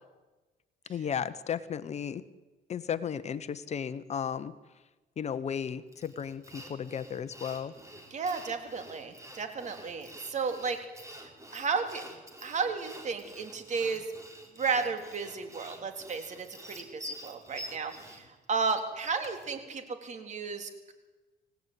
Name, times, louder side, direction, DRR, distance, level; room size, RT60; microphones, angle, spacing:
voice 1, 0.9-2.2 2.7-4.5 5.2-7.7, left 8 dB, 40° left, 14 dB, 1.1 m, -34 dB
Sawing, 5.9-19.5, equal, 20° right, 5.1 m, -48 dB
voice 2, 8.1-10.8 11.5-12.0 12.4-14.0 14.6-20.9, right 5 dB, 45° right, 7 dB, 3.6 m, -33 dB
26.0 x 17.5 x 9.7 m, 1.2 s
cardioid pair, 110°, 17 cm